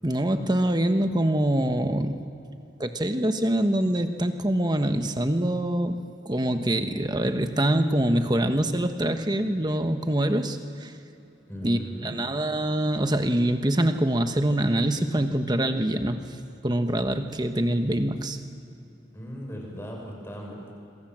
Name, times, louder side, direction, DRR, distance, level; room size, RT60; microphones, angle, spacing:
voice 1, 0.0-2.2 2.8-6.0 6.2-10.9 11.6-16.3 16.6-18.4, right 1 dB, 20° right, 7 dB, 1.2 m, -24 dB
voice 2, 11.5-12.2 19.1-20.7, equal, 15° left, 0 dB, 5.8 m, -37 dB
27.0 x 23.0 x 7.6 m, 2.8 s
head